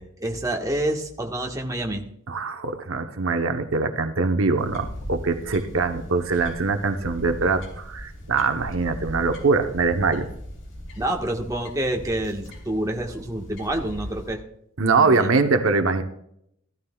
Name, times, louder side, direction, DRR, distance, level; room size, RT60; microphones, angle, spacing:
voice 1, 0.0-2.0 11.0-14.4 15.0-15.3, right 1 dB, 15° right, 1 dB, 1.4 m, -28 dB
voice 2, 2.3-10.3 14.8-16.0, right 4 dB, 80° right, 7 dB, 0.9 m, -23 dB
sound 1, 4.6-14.3, equal, 65° left, 3.4 m, -39 dB
15.0 x 13.0 x 2.3 m, 0.73 s
head